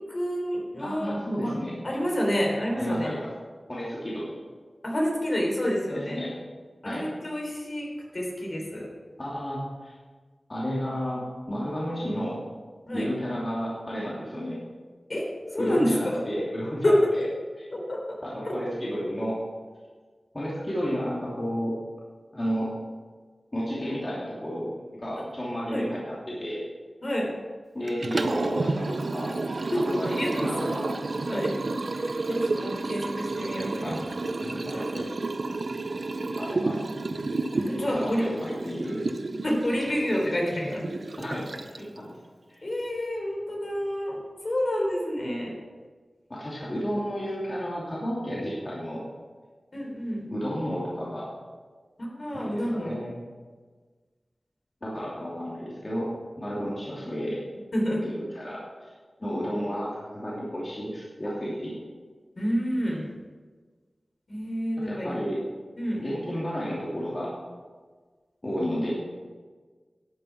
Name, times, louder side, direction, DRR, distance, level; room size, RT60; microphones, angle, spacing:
voice 1, 0.0-1.5 1.8-3.1 4.8-6.3 6.8-7.9 8.1-8.9 12.9-13.1 15.1-15.3 15.5-16.2 16.8-17.1 17.7-18.2 18.4-18.6 25.7-25.9 27.0-27.3 29.7-29.8 30.1-30.7 31.3-31.5 32.3-34.0 34.7-35.1 37.5-38.3 39.4-40.8 42.6-45.6 49.7-50.3 52.0-53.0 57.7-58.0 62.4-63.1 64.3-65.2 65.8-66.0, equal, 50° left, -2 dB, 3.5 m, -28 dB
voice 2, 0.8-1.8 2.8-3.3 3.7-4.4 5.9-6.3 6.8-7.0 9.2-10.0 10.5-12.4 12.9-14.6 15.6-17.2 17.6-17.7 18.2-19.4 20.3-21.8 22.3-22.7 23.5-26.6 27.7-29.4 29.7-30.9 33.8-34.2 34.4-34.9 36.2-36.8 37.9-39.0 41.2-42.1 42.5-42.6 46.3-49.0 50.3-51.3 52.3-53.1 54.8-56.1 56.4-57.5 58.0-58.9 59.2-61.8 64.8-65.4 66.0-67.3 68.4-68.9, equal, 30° left, -6 dB, 2.8 m, -32 dB
Liquid, 27.9-42.0, right 3 dB, 65° right, 0.6 m, -31 dB
12.0 x 7.7 x 6.0 m, 1.4 s
wide cardioid pair, 85°, 0 cm